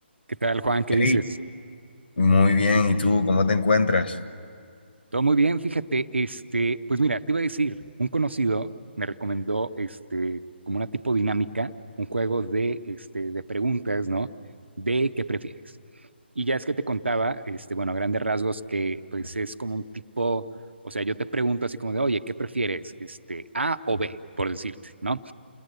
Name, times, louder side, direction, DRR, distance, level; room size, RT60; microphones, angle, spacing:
voice 1, 0.4-1.2 5.1-8.7 9.0-10.4 10.7-14.3 14.8-15.5 16.4-20.5 20.8-25.3, right 3 dB, 80° right, 11 dB, 0.9 m, -27 dB
voice 2, 2.2-4.2, left 3 dB, 60° left, 10 dB, 1.4 m, -20 dB
29.5 x 20.5 x 8.1 m, 2.3 s
figure-of-eight pair, 140°, 6 cm